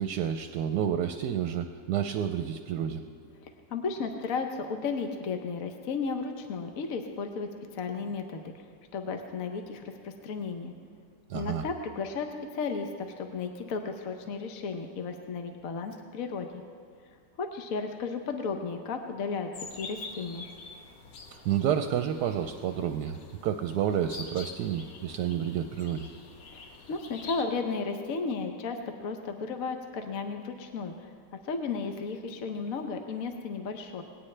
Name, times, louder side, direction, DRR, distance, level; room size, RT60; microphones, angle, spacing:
voice 1, 0.0-3.0 11.3-11.6 21.3-26.1, right 9 dB, 75° right, 7 dB, 1.1 m, -30 dB
voice 2, 3.4-8.6 8.9-10.7 11.3-12.3 12.5-16.5 17.4-20.4 26.5-31.1 31.4-34.0, left 4 dB, 55° left, 5 dB, 1.2 m, -34 dB
sound 1, 19.5-27.4, left 4 dB, 85° left, 1.8 m, -46 dB
20.0 x 17.0 x 3.3 m, 2.2 s
omnidirectional pair, 1.9 m